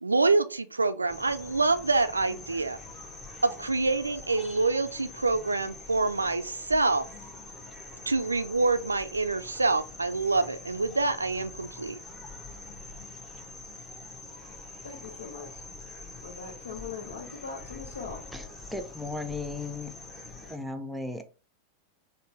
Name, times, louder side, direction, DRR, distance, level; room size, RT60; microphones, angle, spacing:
voice 1, 0.0-2.8 3.4-7.0 8.1-12.0, right 3 dB, 80° right, 0.3 m, -26 dB
sound 1, 1.1-20.6, left 3 dB, 15° left, 0.9 m, -45 dB
voice 2, 14.8-15.6 16.2-18.2, left 5 dB, 65° left, 0.8 m, -41 dB
voice 3, 18.3-19.9 20.5-21.2, left 3 dB, ahead, 0.5 m, -36 dB
4.0 x 2.1 x 4.4 m
figure-of-eight pair, 90°, 0 cm